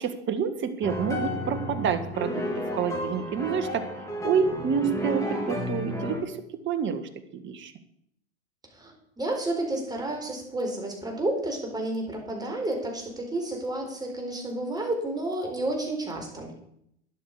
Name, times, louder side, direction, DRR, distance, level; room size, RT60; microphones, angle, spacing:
voice 1, 0.0-2.4 2.7-6.4 6.7-7.7, right 7 dB, 35° right, 10 dB, 1.7 m, -28 dB
sound 1, 0.8-6.2, left 1 dB, 10° left, 3.6 m, -32 dB
voice 2, 8.7-16.5, right 1 dB, 10° right, 2 dB, 4.4 m, -31 dB
12.5 x 10.5 x 4.9 m, 0.73 s
hypercardioid pair, 100°, 34 cm